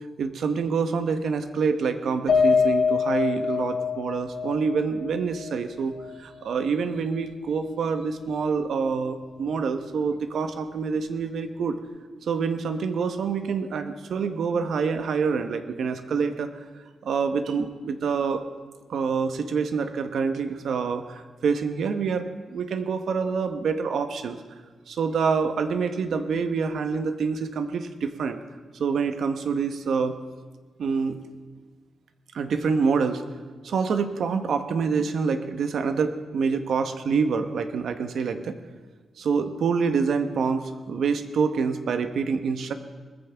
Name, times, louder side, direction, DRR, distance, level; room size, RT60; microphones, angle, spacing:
voice 1, 0.2-11.8 12.2-16.5 17.0-18.4 18.9-24.4 24.9-28.4 28.7-30.2 30.8-31.2 32.3-33.2 33.6-38.6 39.2-42.7, right 5 dB, 70° right, 8 dB, 1.0 m, -26 dB
Piano, 2.3-6.8 7.1-7.3 7.7-7.8, left 5 dB, 75° left, 3.7 m, -25 dB
20.5 x 14.5 x 3.5 m, 1.4 s
wide cardioid pair, 165°, 0 cm